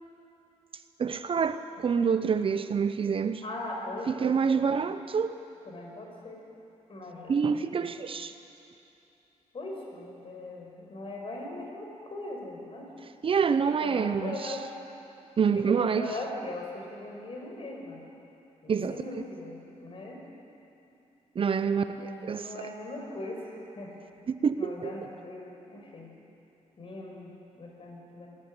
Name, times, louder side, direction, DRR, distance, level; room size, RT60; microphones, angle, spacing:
voice 1, 1.0-3.4 4.1-5.4 7.3-8.3 13.2-14.6 15.4-16.1 18.7-19.0 21.4-22.7 24.3-24.9, right 6 dB, 45° right, 11 dB, 0.7 m, -27 dB
voice 2, 3.4-4.9 5.7-6.4 6.9-7.9 9.5-12.9 13.4-14.6 15.6-18.0 18.6-20.2 21.7-23.9 24.6-26.1 26.8-28.3, left 2 dB, 45° left, 0 dB, 5.2 m, -40 dB
19.0 x 14.0 x 9.8 m, 2.9 s
cardioid pair, 95°, 13 cm